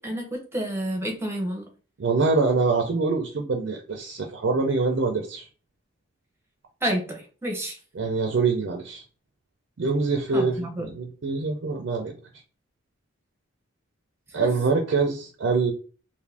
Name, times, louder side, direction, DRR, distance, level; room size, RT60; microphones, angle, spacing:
voice 1, 0.0-1.7 6.8-7.8 10.3-10.9 14.3-14.5, right 1 dB, 10° right, 1 dB, 0.6 m, -30 dB
voice 2, 2.0-5.5 8.0-9.0 9.8-12.1 14.3-15.7, right 4 dB, 65° right, 2 dB, 0.4 m, -24 dB
2.5 x 2.5 x 3.3 m, 0.39 s
head